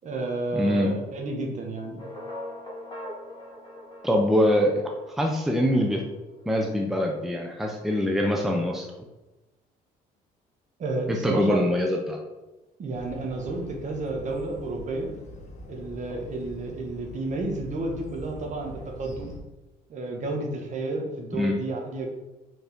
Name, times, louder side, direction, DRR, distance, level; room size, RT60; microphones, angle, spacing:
voice 1, 0.0-2.1 10.8-11.7 12.8-15.1 15.7-19.3 19.9-22.1, right 2 dB, 45° right, 1 dB, 1.4 m, -31 dB
voice 2, 0.5-1.0 4.0-4.8 5.2-6.0 6.5-8.9 11.1-12.2 21.3-21.6, left 1 dB, ahead, 1 dB, 0.7 m, -24 dB
sound 1, 2.0-6.2, left 1 dB, 25° left, 2.0 m, -41 dB
sound 2, 12.9-19.4, left 1 dB, 45° left, 1.2 m, -44 dB
4.9 x 3.9 x 5.1 m, 1.1 s
cardioid pair, 110°, 17 cm